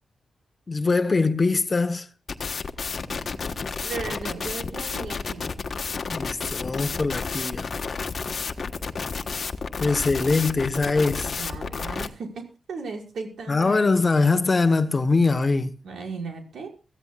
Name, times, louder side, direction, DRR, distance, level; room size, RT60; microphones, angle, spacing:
voice 1, 0.7-2.1 6.1-7.7 9.8-11.3 13.5-15.7, left 3 dB, 25° left, 1.1 m, -22 dB
sound 1, 2.3-12.1, left 5 dB, 45° left, 1.3 m, -31 dB
voice 2, 3.8-5.6 11.4-14.1 15.8-16.7, right 4 dB, 80° right, 5.6 m, -36 dB
24.5 x 15.5 x 2.4 m
wide cardioid pair, 150°, 0 cm